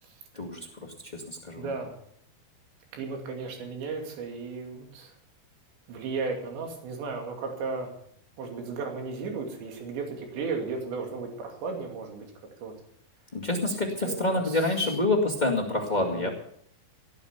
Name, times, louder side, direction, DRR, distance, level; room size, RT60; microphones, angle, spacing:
voice 1, 0.3-1.7 13.3-16.3, left 2 dB, 45° left, 1 dB, 0.5 m, -27 dB
voice 2, 1.6-1.9 2.9-5.1 5.9-7.9 8.4-12.3 12.6-12.7 14.0-14.7 16.0-16.3, right 4 dB, 85° right, 2 dB, 4.9 m, -35 dB
18.0 x 9.7 x 6.7 m, 0.65 s
omnidirectional pair, 5.0 m